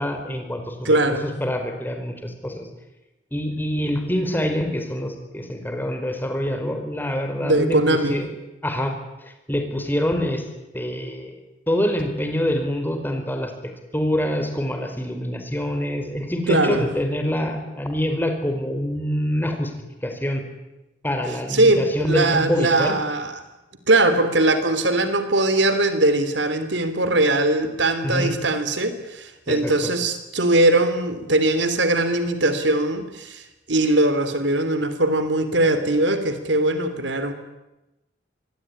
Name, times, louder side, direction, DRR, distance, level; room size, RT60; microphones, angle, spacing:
voice 1, 0.0-2.7 3.3-8.3 8.6-8.9 9.5-10.4 10.7-11.4 11.7-13.5 13.9-19.7 20.0-20.4 21.0-23.0 28.0-28.4 29.5-29.9, equal, 10° left, 5 dB, 4.8 m, -25 dB
voice 2, 0.8-1.3 7.4-8.2 16.5-16.9 21.5-23.4 23.9-33.4 33.7-37.3, right 2 dB, 75° right, 11 dB, 3.2 m, -20 dB
26.5 x 22.0 x 10.0 m, 0.99 s
head